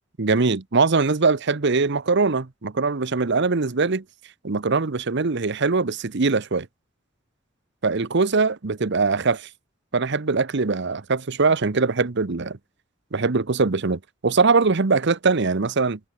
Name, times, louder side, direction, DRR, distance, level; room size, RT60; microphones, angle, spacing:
voice 1, 0.2-4.0 4.4-6.7 7.8-9.5 9.9-12.6 13.1-16.0, right 4 dB, 60° right, 0.9 m, -22 dB
head